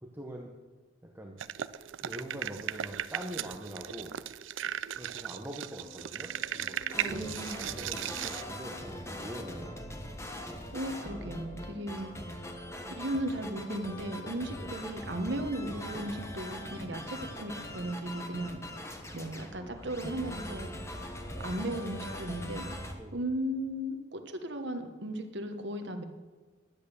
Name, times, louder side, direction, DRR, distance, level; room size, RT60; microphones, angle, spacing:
voice 1, 0.0-0.5 1.1-1.4 2.0-4.2 5.0-7.2 7.6-9.8 14.5-14.7 23.0-23.2, right 1 dB, 10° right, 0 dB, 0.9 m, -43 dB
sound 1, 1.4-8.4, right 10 dB, 85° right, 0.4 m, -37 dB
sound 2, 5.6-22.9, left 4 dB, 35° left, 2.4 m, -55 dB
sound 3, 6.9-22.9, left 1 dB, 15° left, 1.1 m, -41 dB
voice 2, 7.1-7.6 10.7-12.4 13.0-18.6 19.1-20.7 21.4-22.7 23.1-26.0, right 1 dB, 70° right, 7 dB, 1.2 m, -36 dB
10.5 x 9.1 x 6.9 m, 1.3 s
head